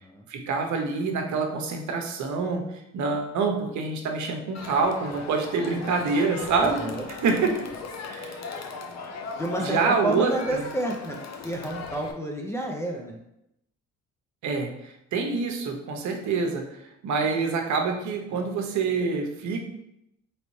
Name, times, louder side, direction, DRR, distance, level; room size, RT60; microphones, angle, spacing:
voice 1, 0.3-6.9 7.2-7.7 8.2-8.4 9.6-10.6 14.4-16.7 17.0-19.6, right 4 dB, 70° right, 3 dB, 0.8 m, -26 dB
Crowd, 4.5-12.1, left 4 dB, 60° left, 0.6 m, -38 dB
voice 2, 6.6-7.1 9.4-11.2 11.4-13.2, right 1 dB, 10° left, -1 dB, 0.6 m, -30 dB
4.1 x 3.2 x 3.1 m, 0.82 s
cardioid pair, 90°, 30 cm